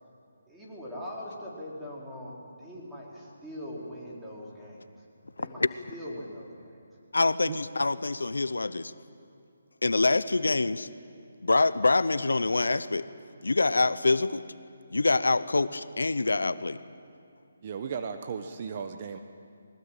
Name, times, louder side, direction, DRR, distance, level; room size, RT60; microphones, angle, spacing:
voice 1, 0.5-5.0 5.4-6.8, equal, 5° right, -6 dB, 4.6 m, -41 dB
voice 2, 7.1-8.9 9.8-10.9 11.4-13.1 13.4-14.4 14.9-16.8, left 3 dB, 85° left, 15 dB, 0.8 m, -25 dB
voice 3, 17.6-19.2, right 6 dB, 40° right, 7 dB, 1.1 m, -35 dB
22.0 x 19.5 x 9.1 m, 2.5 s
figure-of-eight pair, 155°, 0 cm